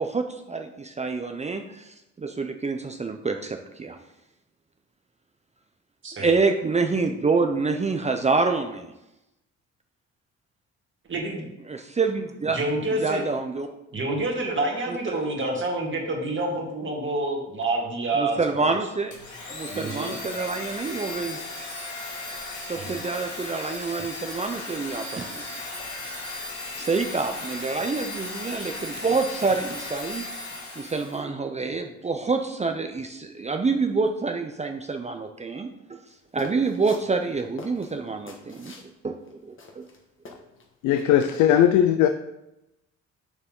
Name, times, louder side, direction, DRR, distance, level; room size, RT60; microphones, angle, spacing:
voice 1, 0.0-4.0 6.1-8.9 11.7-12.6 12.9-13.7 15.1-15.2 18.1-19.2 19.5-21.4 22.7-25.5 26.8-30.3 30.8-36.0 36.3-38.7 39.0-39.9, right 4 dB, 25° right, 5 dB, 0.6 m, -27 dB
voice 2, 11.1-11.5 12.5-13.2 13.9-18.4 19.7-20.1 22.8-23.0, right 2 dB, 40° right, -1 dB, 2.2 m, -28 dB
Domestic sounds home sounds, 19.1-31.2, left 2 dB, 75° left, 2.5 m, -36 dB
sound 1, 36.4-38.9 39.3-39.4 39.6-40.6 40.9-41.4, left 3 dB, 40° left, 1.5 m, -45 dB
voice 3, 40.8-42.1, left 10 dB, 90° left, 9 dB, 0.5 m, -18 dB
6.9 x 6.6 x 3.7 m, 0.91 s
cardioid pair, 90°, 30 cm